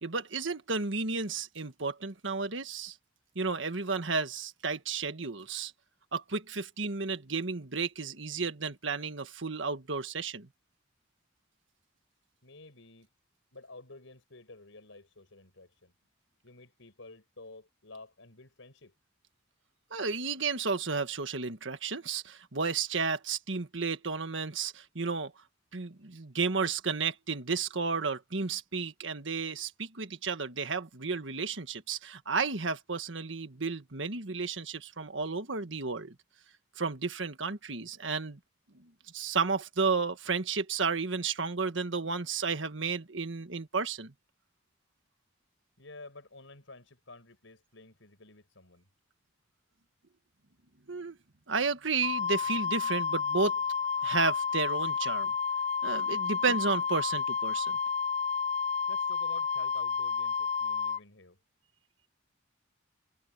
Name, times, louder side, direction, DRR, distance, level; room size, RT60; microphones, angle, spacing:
voice 1, 0.0-3.0 3.3-5.7 6.1-10.5 19.9-25.3 25.7-36.1 36.8-38.4 38.8-44.1 50.9-51.2 51.5-53.6 54.0-55.3 55.8-57.8, right 4 dB, 75° right, 1.6 m, -32 dB
voice 2, 12.4-13.1 13.5-15.9 16.4-18.9 45.8-48.9 58.7-61.4, left 2 dB, 80° left, 5.2 m, -51 dB
Wind instrument woodwind instrument, 52.0-61.0, left 6 dB, 35° left, 0.5 m, -31 dB
head